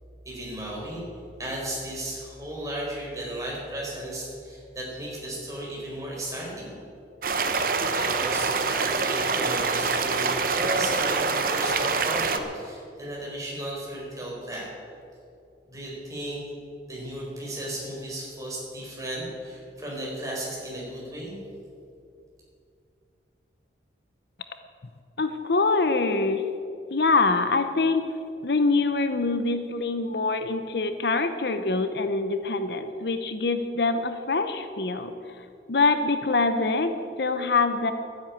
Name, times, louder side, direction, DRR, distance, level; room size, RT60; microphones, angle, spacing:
voice 1, 0.2-1.0 1.4-6.7 7.9-14.7 15.7-16.4 16.9-21.4, right 1 dB, 20° right, -4 dB, 4.7 m, -35 dB
sound 1, 7.2-12.4, right 4 dB, 50° right, 0.9 m, -25 dB
voice 2, 25.2-26.4 26.9-28.0 28.4-35.1 35.7-37.9, left 3 dB, 60° left, 9 dB, 0.7 m, -24 dB
12.5 x 10.0 x 8.7 m, 2.5 s
head